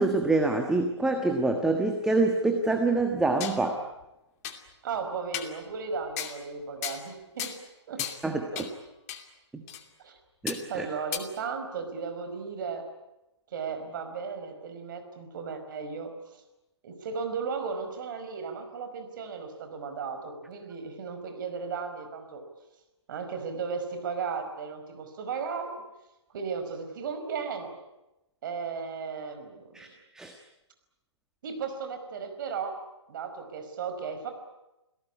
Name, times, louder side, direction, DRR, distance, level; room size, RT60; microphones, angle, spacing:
voice 1, 0.0-3.8 8.2-8.4 9.5-9.6 10.4-10.9 29.7-29.9 30.1-30.3, right 2 dB, 5° right, 4 dB, 1.4 m, -26 dB
sound 1, 3.0-3.6 4.0-4.1 4.4-4.6 5.3-5.6 6.2-6.4 6.8-7.1 7.4-7.6 8.0-8.2 8.6-8.7 9.1-9.2 9.7-9.8 10.5-10.6 11.1-11.2, left 10 dB, 35° left, 2.6 m, -35 dB
voice 2, 4.8-7.6 7.9-8.1 8.5-8.7 10.0-10.1 10.7-12.9 13.5-16.1 16.8-22.5 23.1-25.8 26.3-27.7 28.4-29.9 31.4-32.7 33.1-34.3, right 5 dB, 45° right, 7 dB, 5.3 m, -35 dB
28.0 x 17.5 x 9.8 m, 0.95 s
hypercardioid pair, 145°, 15 cm